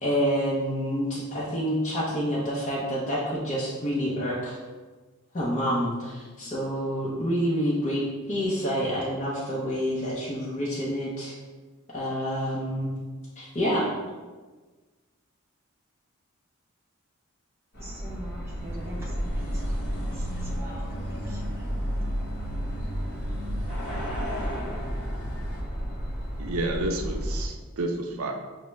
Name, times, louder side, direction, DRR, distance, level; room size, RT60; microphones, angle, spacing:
voice 1, 0.0-4.6 5.3-11.3 11.9-12.9 13.4-13.9, equal, 35° left, -6 dB, 0.5 m, -28 dB
sound 1, 17.7-27.5, equal, 50° left, 1.2 m, -32 dB
voice 2, 17.8-21.7, equal, 10° right, -6 dB, 0.7 m, -45 dB
sound 2, 18.4-25.6, equal, 90° left, 0.7 m, -40 dB
voice 3, 26.4-28.3, right 2 dB, 90° right, 3 dB, 0.5 m, -30 dB
5.6 x 2.0 x 3.2 m, 1.3 s
head